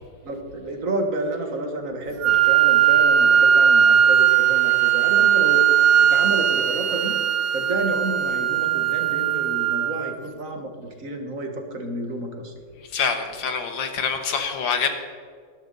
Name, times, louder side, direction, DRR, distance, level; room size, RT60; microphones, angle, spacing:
voice 1, 0.2-5.6 6.1-7.1 7.5-12.5, right 2 dB, 45° right, 4 dB, 1.8 m, -30 dB
Wind instrument woodwind instrument, 2.2-10.2, right 9 dB, 75° right, 1.5 m, -18 dB
voice 2, 12.9-14.9, left 6 dB, 70° left, 6 dB, 2.0 m, -25 dB
18.5 x 11.5 x 4.0 m, 2.1 s
omnidirectional pair, 2.1 m